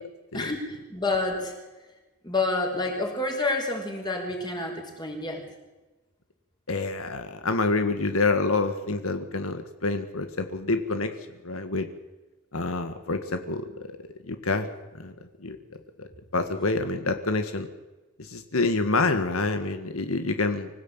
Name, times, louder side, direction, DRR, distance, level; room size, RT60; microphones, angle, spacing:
voice 1, 0.3-1.5 2.2-5.4, left 2 dB, 20° left, 2 dB, 5.3 m, -28 dB
voice 2, 6.7-11.1 11.4-11.9 12.5-13.7 14.3-14.7 15.0-15.1 15.4-15.6 16.0-16.1 16.3-17.7 18.2-20.7, left 3 dB, 85° left, 8 dB, 1.8 m, -27 dB
25.5 x 16.5 x 9.0 m, 1.1 s
head